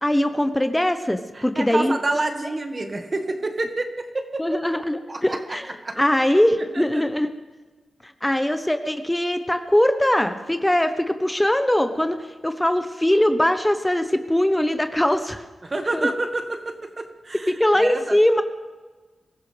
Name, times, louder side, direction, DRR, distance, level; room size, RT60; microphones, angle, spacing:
voice 1, 0.0-2.0 4.4-5.6 6.0-7.3 8.0-15.4 15.9-16.1 17.5-18.4, left 1 dB, 10° left, 8 dB, 1.1 m, -21 dB
voice 2, 1.3-4.4 5.1-5.6 5.8-6.0 6.2-6.4 6.7-7.0 15.6-17.5 17.8-18.2, right 2 dB, 45° right, 5 dB, 2.0 m, -28 dB
23.5 x 14.5 x 3.5 m, 1.3 s
supercardioid pair, 40°, 0 cm